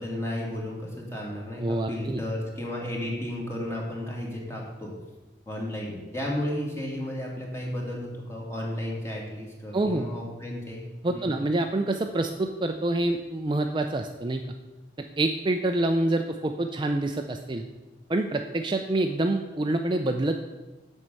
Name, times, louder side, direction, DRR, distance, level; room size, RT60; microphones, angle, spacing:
voice 1, 0.0-4.9 5.5-10.9 11.1-11.4, left 1 dB, 15° left, -2 dB, 2.1 m, -33 dB
voice 2, 1.6-2.2 9.7-10.1 11.0-14.4 15.0-17.6 18.1-20.3, right 2 dB, 25° right, 5 dB, 0.4 m, -26 dB
7.7 x 5.4 x 7.5 m, 1.1 s
head